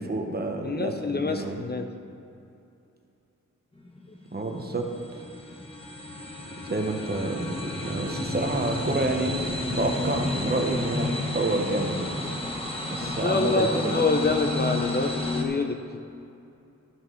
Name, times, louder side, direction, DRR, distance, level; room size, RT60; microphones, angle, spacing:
voice 1, 0.0-1.6 4.3-5.2 6.6-9.3 9.8-11.1 11.3-12.4 12.9-14.0, right 2 dB, 30° right, 3 dB, 1.0 m, -29 dB
voice 2, 0.6-1.9 13.0-16.0, left 3 dB, 35° left, 6 dB, 0.5 m, -27 dB
sound 1, 3.8-15.4, left 2 dB, 20° left, 1.0 m, -31 dB
13.0 x 5.7 x 5.7 m, 2.7 s
wide cardioid pair, 130°, 30 cm